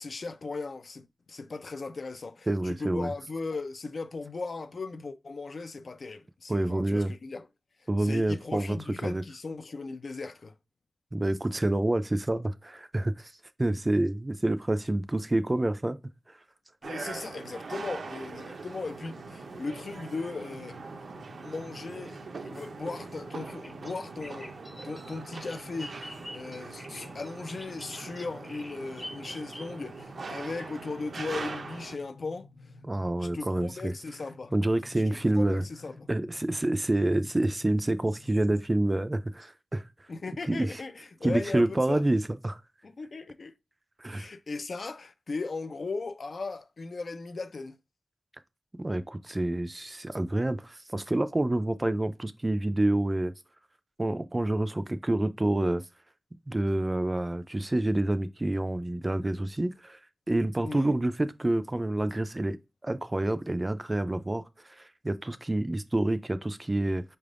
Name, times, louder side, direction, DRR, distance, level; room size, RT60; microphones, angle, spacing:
voice 1, 0.0-7.5 8.0-10.5 16.8-20.8 21.4-24.6 24.8-32.5 33.2-34.5 35.1-36.1 40.1-42.0 42.8-43.5 44.1-47.8 60.6-61.0, left 3 dB, 60° left, 0.4 m, -37 dB
voice 2, 2.5-3.1 6.5-7.1 7.9-8.8 9.0-9.2 11.1-13.3 13.6-16.0 32.8-33.9 34.5-35.6 36.1-39.8 40.5-40.8 41.2-42.6 44.0-44.3 48.8-53.3 54.0-55.8 56.5-60.0 60.3-62.6 62.8-64.4 64.8-67.0, right 1 dB, 25° right, 0.4 m, -28 dB
sound 1, 16.8-32.0, right 4 dB, 75° right, 0.5 m, -42 dB
sound 2, 19.0-38.6, left 3 dB, 80° left, 0.9 m, -52 dB
Bird vocalization bird call bird song, 23.5-30.0, left 1 dB, 20° left, 0.7 m, -46 dB
5.3 x 3.4 x 2.4 m
wide cardioid pair, 90°, 0 cm